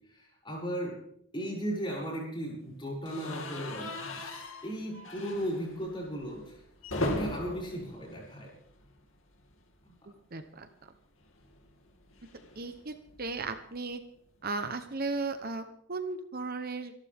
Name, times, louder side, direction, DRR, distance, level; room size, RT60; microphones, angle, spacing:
voice 1, 0.1-1.0 1.3-6.6 6.9-8.5 9.8-9.9, equal, 20° left, -3 dB, 7.1 m, -36 dB
sound 1, 3.1-9.1 9.4-9.6 9.8-9.9 11.2-13.5, left 1 dB, 60° left, 2.6 m, -39 dB
voice 2, 10.3-10.7 12.6-14.0 14.4-16.9, right 3 dB, 45° right, 9 dB, 0.9 m, -36 dB
26.5 x 12.0 x 3.6 m, 0.71 s
head